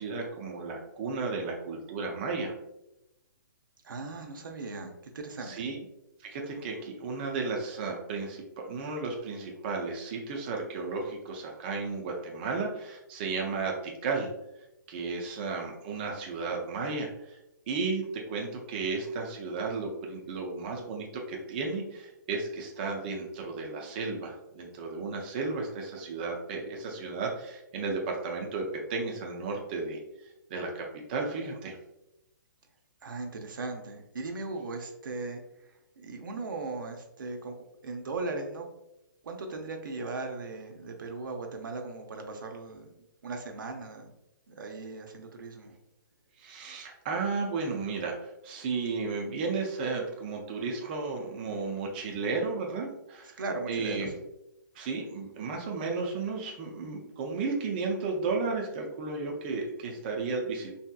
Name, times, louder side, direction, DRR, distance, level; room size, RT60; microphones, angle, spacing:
voice 1, 0.0-2.5 5.5-5.8 6.2-14.3 14.9-17.4 17.7-30.0 30.5-31.8 46.4-53.4 53.7-54.1 54.7-60.8, right 4 dB, 30° right, 0 dB, 0.4 m, -33 dB
voice 2, 3.8-5.7 33.0-37.5 37.8-38.7 39.2-42.9 43.2-44.1 44.5-45.8 53.2-54.1, right 3 dB, 85° right, 3 dB, 0.6 m, -38 dB
3.3 x 2.7 x 2.2 m, 0.87 s
hypercardioid pair, 160°, 11 cm